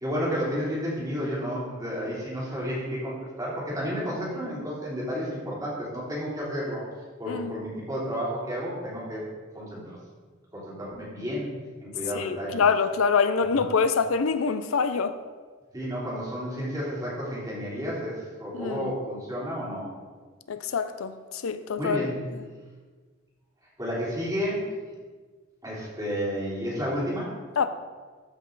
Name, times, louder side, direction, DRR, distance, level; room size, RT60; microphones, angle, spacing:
voice 1, 0.0-6.8 7.2-9.2 9.5-10.0 10.5-11.5 11.8-12.6 13.5-13.6 15.7-19.9 21.8-22.2 23.8-24.7 25.6-27.3, equal, 20° right, 3.1 m, -31 dB
voice 2, 12.1-15.1 18.5-18.9 20.5-22.0 27.6-27.7, left 5 dB, 85° left, 0.5 m, -25 dB
13.5 x 5.3 x 4.0 m
head